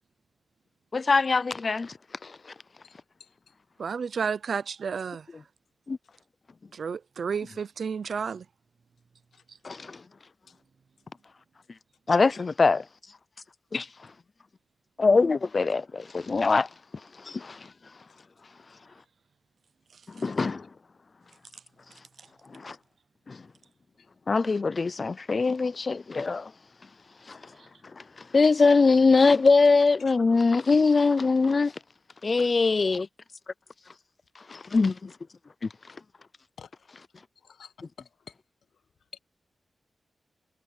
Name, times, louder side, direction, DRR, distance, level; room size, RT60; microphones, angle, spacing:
voice 1, 0.9-1.9 2.2-2.4 5.9-6.0 9.6-10.0 12.1-12.8 13.7-13.9 15.0-16.7 17.2-17.7 20.1-20.7 22.5-22.8 23.3-23.4 24.3-26.5 27.3-27.4 28.3-31.7 32.2-33.1 34.5-35.1 35.6-35.7, left 4 dB, 40° left, 0.3 m, -22 dB
voice 2, 3.8-5.4 6.7-8.5 9.5-9.6 19.9-20.0 22.2-22.3 27.6-27.7, right 6 dB, 65° right, 0.7 m, -32 dB
voice 3, 37.4-38.3 39.1-39.2, left 7 dB, 85° left, 1.1 m, -49 dB
wide cardioid pair, 125°, 0 cm